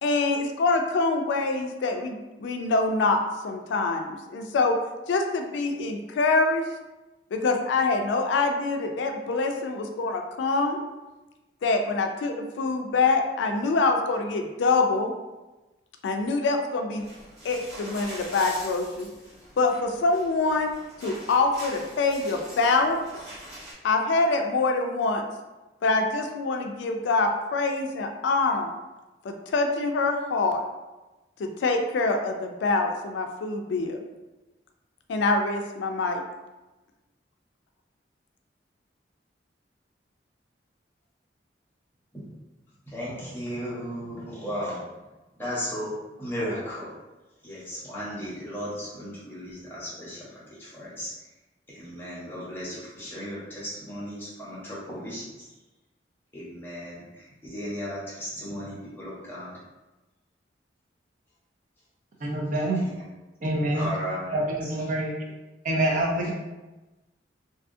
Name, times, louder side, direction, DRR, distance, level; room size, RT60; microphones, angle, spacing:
voice 1, 0.0-3.2 3.4-4.8 5.1-6.6 7.3-10.8 11.6-15.1 16.0-17.0 17.4-19.1 19.6-20.7 21.0-23.0 23.8-25.2 25.8-28.7 29.2-30.6 31.4-34.0 35.1-36.2, left 3 dB, 85° left, 4 dB, 0.3 m, -25 dB
sound 1, 17.0-23.7, equal, 70° right, 1.2 m, -43 dB
voice 2, 42.9-44.8 45.4-45.9 46.2-46.9 47.4-50.2 50.6-51.1 51.7-55.5 56.3-59.5 62.8-63.0 63.7-64.4, equal, 10° left, -9 dB, 0.9 m, -35 dB
voice 3, 62.2-62.8 63.4-63.9 64.3-65.1 65.6-66.3, right 1 dB, 45° right, -1 dB, 0.5 m, -26 dB
2.7 x 2.3 x 2.5 m, 1.1 s
head